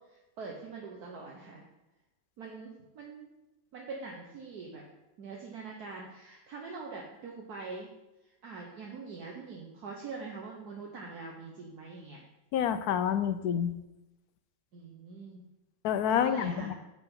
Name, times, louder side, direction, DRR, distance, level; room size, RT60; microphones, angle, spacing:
voice 1, 0.1-1.6 2.4-3.3 3.7-4.8 5.2-7.9 8.2-12.2 14.7-15.4 16.1-16.7, right 4 dB, 65° right, -1 dB, 1.6 m, -43 dB
voice 2, 12.5-13.7 15.8-16.7, left 8 dB, 70° left, 11 dB, 1.1 m, -28 dB
11.0 x 8.0 x 3.8 m, 0.97 s
omnidirectional pair, 1.8 m